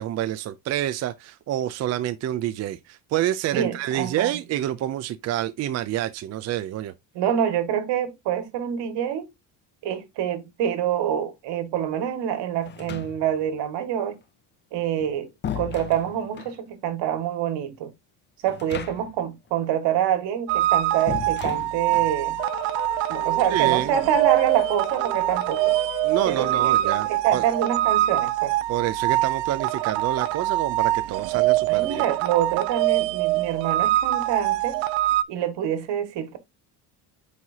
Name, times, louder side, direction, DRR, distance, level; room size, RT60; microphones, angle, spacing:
voice 1, 0.0-6.9 23.5-24.0 26.0-27.5 28.7-32.0, right 12 dB, 35° right, 0.5 m, -28 dB
voice 2, 3.5-4.3 7.1-9.3 9.8-14.2 14.7-15.3 15.6-17.9 18.4-22.4 23.1-25.8 26.2-28.5 31.7-34.8 35.3-36.4, right 10 dB, 65° right, 2.0 m, -26 dB
sound 1, 12.6-13.5 14.8-16.6 18.4-19.3 19.5-19.6 21.1-22.2, left 9 dB, 25° left, 0.4 m, -36 dB
sound 2, 20.5-35.2, right 15 dB, 85° right, 0.7 m, -24 dB
sound 3, 22.4-27.3, left 5 dB, 85° left, 1.7 m, -38 dB
9.5 x 4.9 x 2.7 m
cardioid pair, 165°, 45 cm